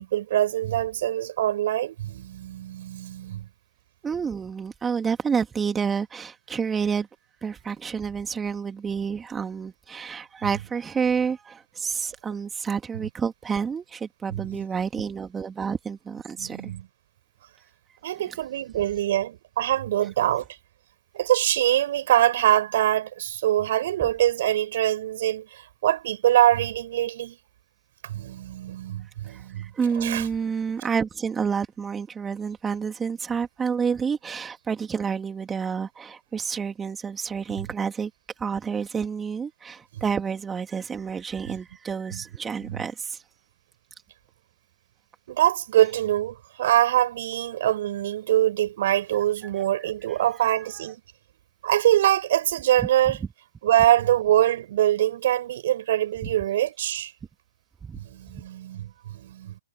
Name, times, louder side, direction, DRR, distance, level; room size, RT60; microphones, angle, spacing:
voice 1, 0.0-3.5 13.0-13.1 14.3-14.6 16.4-16.8 18.0-20.5 21.1-27.4 28.0-29.7 30.0-30.3 40.0-40.1 41.5-41.6 42.1-42.2 42.6-42.8 45.3-51.0 51.6-53.2 53.6-57.1 58.0-59.6, right 12 dB, 50° right, 6.0 m, -24 dB
voice 2, 4.0-7.1 7.4-16.7 29.3-38.1 38.4-43.2 50.1-50.6 57.8-58.0 58.3-58.4, right 6 dB, 15° right, 2.7 m, -29 dB
figure-of-eight pair, 125°, 0 cm